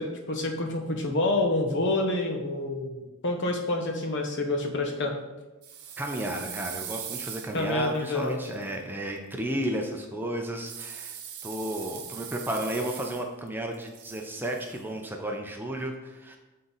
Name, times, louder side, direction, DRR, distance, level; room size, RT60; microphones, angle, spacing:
voice 1, 0.0-5.1 7.5-8.4, left 2 dB, 55° left, 3 dB, 0.9 m, -28 dB
sound 1, 5.6-8.7 10.7-13.5 13.7-14.8, right 8 dB, 85° right, 0.8 m, -41 dB
voice 2, 6.0-16.4, right 1 dB, 10° right, 2 dB, 0.5 m, -33 dB
7.8 x 3.7 x 4.0 m, 1.1 s
head